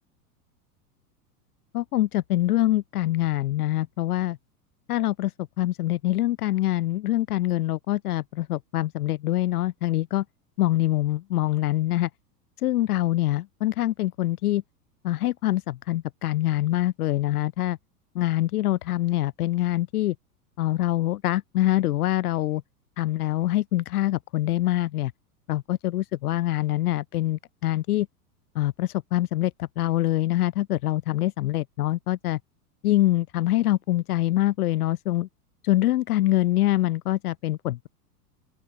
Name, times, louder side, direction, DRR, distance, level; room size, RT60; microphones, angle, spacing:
voice 1, 1.7-4.4 4.9-5.3 5.6-10.2 10.6-12.1 12.6-14.6 15.0-17.8 18.1-20.1 20.6-22.6 23.0-25.1 25.5-28.1 28.5-32.4 32.8-35.3 35.6-37.9, left 15 dB, 65° left, 0.8 m, -24 dB
open air
hypercardioid pair, 95°, 48 cm